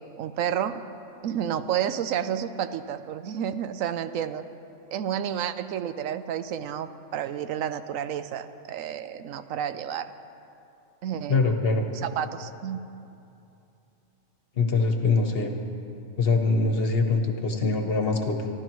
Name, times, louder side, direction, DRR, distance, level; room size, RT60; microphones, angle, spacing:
voice 1, 0.2-0.8 1.2-4.4 4.9-10.1 11.0-11.4 12.0-12.8, right 9 dB, 90° right, 11 dB, 1.0 m, -30 dB
voice 2, 11.3-11.9 14.5-15.5 16.2-18.5, left 3 dB, 50° left, 4 dB, 1.3 m, -23 dB
27.0 x 12.5 x 3.1 m, 2.7 s
omnidirectional pair, 1.4 m